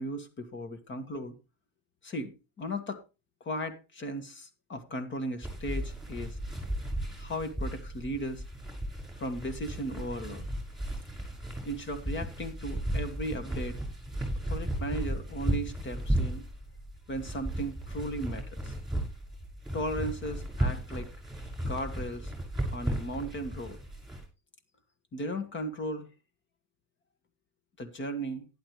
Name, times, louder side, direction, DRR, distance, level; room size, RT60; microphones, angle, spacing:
voice 1, 0.0-1.4 2.0-3.0 3.4-6.4 7.2-8.4 9.2-10.5 11.6-13.8 14.5-16.4 17.1-18.7 19.7-21.1 21.7-22.3 22.7-23.8 25.1-26.1 27.8-28.5, equal, 35° left, 2.1 m, -36 dB
sound 1, 5.4-24.2, right 1 dB, ahead, 6.5 m, -35 dB
11.5 x 11.5 x 3.2 m
cardioid pair, 115°, 32 cm